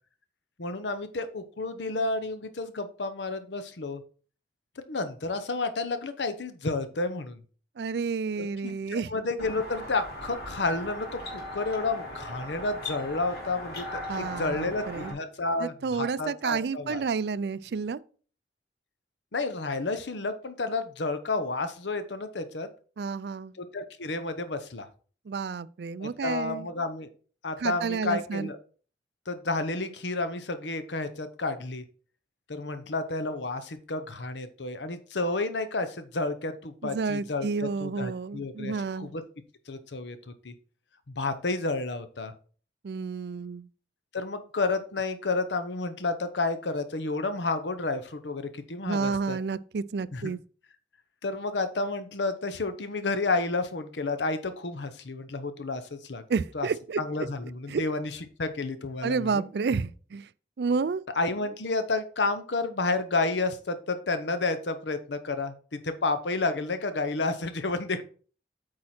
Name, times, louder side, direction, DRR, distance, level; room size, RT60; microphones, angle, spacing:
voice 1, 0.6-4.0 4.9-7.4 8.4-17.0 19.3-22.7 23.6-24.9 26.0-27.1 27.4-28.6 29.3-31.8 32.5-39.2 39.7-40.2 40.4-40.5 41.1-42.3 44.1-49.4 50.1-50.3 51.2-56.2 56.5-56.7 57.0-59.5 61.2-68.0, left 3 dB, 90° left, 0.8 m, -31 dB
voice 2, 7.8-9.1 14.1-15.1 15.6-18.0 23.0-23.5 25.3-26.7 27.6-28.5 36.8-39.1 42.8-43.7 48.9-50.4 56.3-57.0 57.7-57.8 59.0-60.3 60.6-61.0, right 5 dB, 65° right, 0.4 m, -30 dB
sound 1, 9.4-15.1, left 1 dB, 65° left, 2.6 m, -39 dB
8.5 x 4.8 x 4.4 m
head